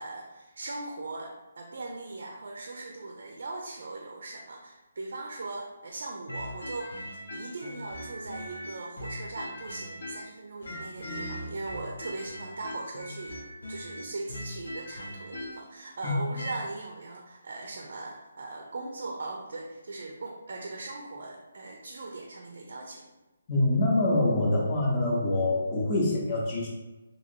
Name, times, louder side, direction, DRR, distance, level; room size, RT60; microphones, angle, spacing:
voice 1, 0.0-13.4 13.7-23.1, right 2 dB, 60° right, 1 dB, 0.4 m, -39 dB
sound 1, 6.3-10.3 10.6-16.6, equal, 85° left, 0.7 m, -40 dB
voice 2, 23.5-26.7, left 2 dB, 20° left, -4 dB, 0.6 m, -25 dB
2.9 x 2.7 x 2.6 m, 1.1 s
hypercardioid pair, 170°, 0 cm